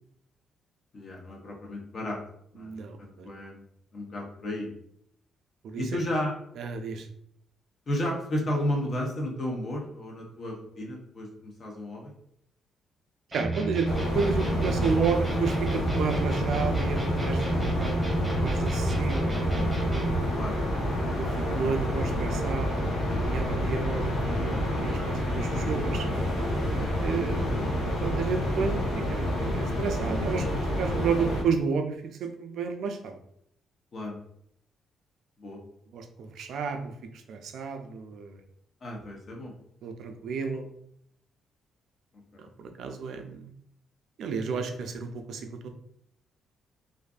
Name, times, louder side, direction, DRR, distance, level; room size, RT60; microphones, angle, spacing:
voice 1, 0.9-2.2 2.5-2.7 3.0-3.6 3.9-4.7 5.8-6.3 7.9-12.1 19.3-19.8 20.3-20.6 24.2-24.5 26.8-26.9 27.3-27.8 33.9-34.2 35.4-35.6 38.8-39.5 42.3-42.5, left 1 dB, 50° left, -1 dB, 0.8 m, -33 dB
voice 2, 2.6-3.3 5.6-5.8 6.6-7.1 13.3-13.9 14.1-19.4 21.1-26.1 27.0-27.4 28.0-30.5 30.7-33.2 35.9-38.4 39.8-40.7 42.4-43.5 44.2-45.7, right 5 dB, 70° right, 5 dB, 0.4 m, -32 dB
sound 1, 13.3-20.3, right 2 dB, 15° right, 0.8 m, -31 dB
sound 2, 13.8-31.4, left 1 dB, 80° left, 0.8 m, -28 dB
2.5 x 2.4 x 2.3 m, 0.71 s
cardioid pair, 90°, 0 cm